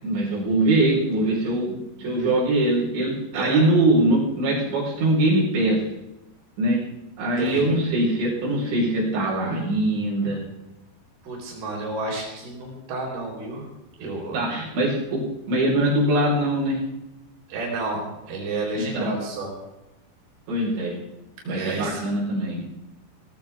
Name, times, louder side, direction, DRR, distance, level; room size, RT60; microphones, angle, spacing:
voice 1, 0.0-5.8 6.6-6.8 7.2-10.4 14.3-16.8 18.8-19.1 20.5-21.0 21.4-22.6, right 1 dB, 85° right, -5 dB, 6.8 m, -22 dB
voice 2, 11.2-13.7 14.0-14.5 17.5-19.5 21.4-22.0, right 2 dB, 65° right, -2 dB, 6.4 m, -31 dB
18.0 x 16.0 x 3.6 m, 0.99 s
omnidirectional pair, 5.0 m